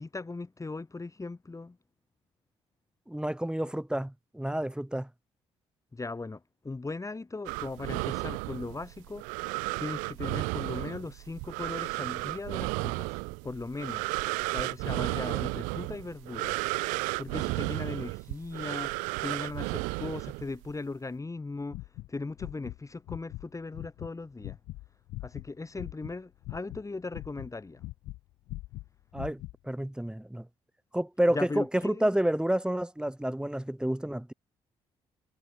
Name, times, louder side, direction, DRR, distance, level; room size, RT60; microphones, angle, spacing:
voice 1, 0.0-1.8 5.9-9.4 9.8-13.2 13.4-14.1 14.5-16.6 17.2-21.8 22.1-24.6 25.2-27.8 31.3-32.1, left 3 dB, 25° left, 3.1 m, -38 dB
voice 2, 3.1-5.1 29.1-29.4 29.7-30.5 30.9-34.3, right 1 dB, 5° right, 5.9 m, -29 dB
sound 1, 7.5-20.8, right 29 dB, 85° right, 4.3 m, -33 dB
sound 2, 21.7-22.8 23.1-23.5 23.7-26.2 26.4-28.2 28.5-29.6, left 19 dB, 80° left, 3.5 m, -41 dB
hypercardioid pair, 55°, 13 cm